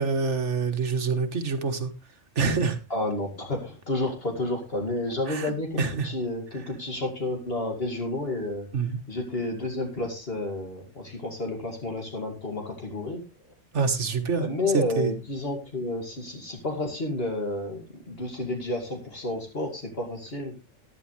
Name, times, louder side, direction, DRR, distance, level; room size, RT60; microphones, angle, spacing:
voice 1, 0.0-1.9 2.4-2.8 5.3-5.5 5.8-6.1 8.7-9.0 13.7-14.5 14.7-15.1, right 5 dB, 75° right, 8 dB, 1.8 m, -26 dB
voice 2, 2.9-8.7 9.1-13.3 14.4-20.5, left 2 dB, 55° left, 1 dB, 2.6 m, -31 dB
14.5 x 11.0 x 3.2 m, 0.27 s
omnidirectional pair, 1.2 m